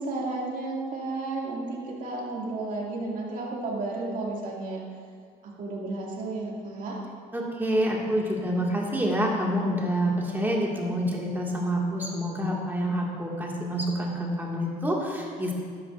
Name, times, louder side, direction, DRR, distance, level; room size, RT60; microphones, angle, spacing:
voice 1, 0.0-4.8 5.4-7.0, right 2 dB, 50° right, -3 dB, 2.4 m, -32 dB
voice 2, 7.3-15.5, equal, 10° right, -3 dB, 2.0 m, -27 dB
12.5 x 10.0 x 2.6 m, 2.1 s
cardioid pair, 110°, 17 cm